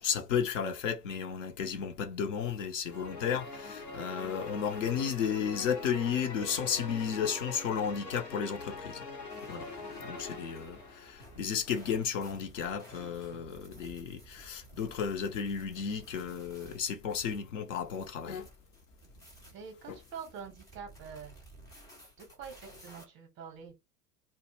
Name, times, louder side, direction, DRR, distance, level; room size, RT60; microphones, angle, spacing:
voice 1, 0.0-9.0 9.5-9.7 10.0-18.5 19.9-20.0, left 7 dB, 50° left, 0.6 m, -33 dB
sound 1, 2.9-11.5, left 3 dB, 90° left, 0.9 m, -43 dB
sound 2, 9.3-23.0, right 1 dB, 10° left, 0.4 m, -55 dB
voice 2, 19.5-21.4 22.2-23.8, right 6 dB, 25° right, 0.7 m, -46 dB
2.1 x 2.1 x 3.0 m
figure-of-eight pair, 90°, 48 cm